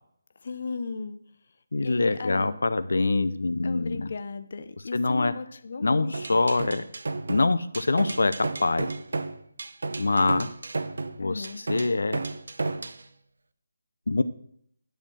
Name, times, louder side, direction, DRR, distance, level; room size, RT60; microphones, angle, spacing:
voice 1, 0.4-1.2 1.8-2.6 3.6-6.4 11.2-11.6, left 4 dB, 40° left, 11 dB, 0.6 m, -36 dB
voice 2, 1.7-4.1 4.9-5.3 5.8-6.8 7.3-8.9 10.0-10.5 11.2-12.2 14.1-14.2, left 3 dB, 80° left, 13 dB, 0.6 m, -24 dB
sound 1, 6.1-13.0, right 3 dB, 65° right, 0.7 m, -33 dB
10.5 x 4.5 x 7.3 m, 0.67 s
hypercardioid pair, 175°, 0 cm